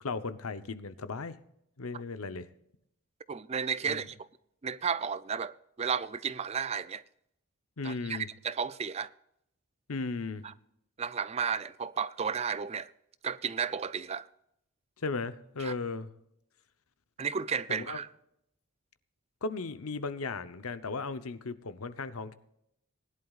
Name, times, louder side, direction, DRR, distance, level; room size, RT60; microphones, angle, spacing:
voice 1, 0.0-1.4 1.8-2.5 3.9-4.1 7.8-8.3 9.9-10.4 15.0-16.1 17.7-18.0 19.4-22.3, left 3 dB, 80° left, 0.8 m, -36 dB
voice 2, 3.3-4.2 4.6-7.0 7.8-9.1 10.4-10.5 11.0-12.9 13.2-14.3 15.6-15.7 17.2-18.1, right 6 dB, 30° right, 0.4 m, -33 dB
20.5 x 11.0 x 2.4 m
head